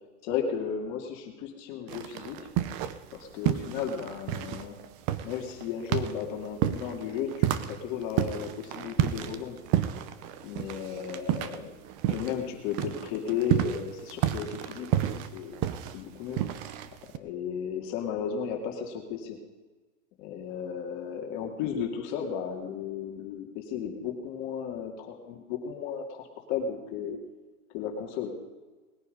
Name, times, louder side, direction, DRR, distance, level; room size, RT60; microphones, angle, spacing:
voice 1, 0.2-2.5 3.1-4.8 5.2-9.6 10.4-11.7 12.1-15.6 15.9-16.4 17.1-19.4 20.2-27.2 27.7-28.4, left 7 dB, 35° left, 2 dB, 2.4 m, -34 dB
sound 1, 1.9-3.2 3.4-12.5 12.7-17.2, right 12 dB, 25° right, 0.6 m, -30 dB
19.5 x 9.7 x 5.3 m, 1.3 s
hypercardioid pair, 145°, 45 cm